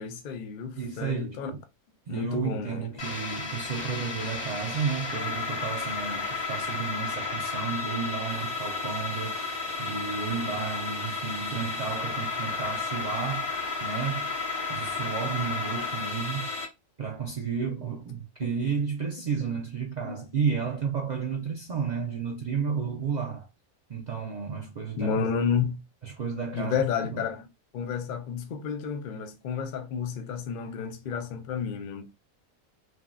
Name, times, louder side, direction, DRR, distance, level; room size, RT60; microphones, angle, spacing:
voice 1, 0.0-1.5 2.1-2.9 6.1-6.2 18.4-18.5 20.0-20.2 25.0-25.8 26.5-27.4 27.7-32.1, left 7 dB, 65° left, 0.4 m, -31 dB
voice 2, 0.8-1.6 2.1-9.4 9.8-14.3 14.7-16.5 17.0-23.5 23.9-25.3 26.0-26.8 27.1-27.2, right 6 dB, 85° right, 0.3 m, -32 dB
sound 1, 3.0-16.7, left 4 dB, 50° left, 0.9 m, -32 dB
3.4 x 2.4 x 2.2 m
omnidirectional pair, 1.5 m